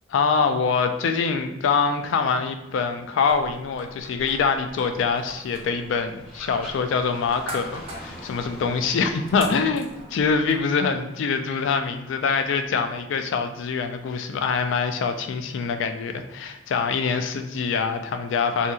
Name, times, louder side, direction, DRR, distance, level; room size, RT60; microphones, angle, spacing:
voice 1, 0.1-18.7, left 5 dB, 70° left, 7 dB, 0.3 m, -24 dB
sound 1, 2.6-12.7, equal, 30° left, 0.7 m, -46 dB
sound 2, 3.3-10.6, right 1 dB, 30° right, 0.5 m, -42 dB
2.8 x 2.7 x 2.3 m, 0.94 s
head